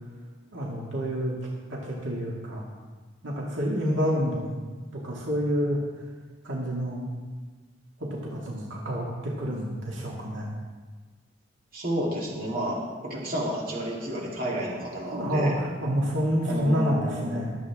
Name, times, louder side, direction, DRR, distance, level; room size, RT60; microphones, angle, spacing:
voice 1, 0.5-1.3 1.7-2.6 3.2-4.5 4.9-5.8 6.4-7.0 8.0-10.5 15.1-17.5, equal, 85° right, -3 dB, 2.1 m, -28 dB
voice 2, 11.7-15.5 16.4-17.4, right 1 dB, 50° right, -4 dB, 3.1 m, -31 dB
23.5 x 8.1 x 3.6 m, 1.4 s
head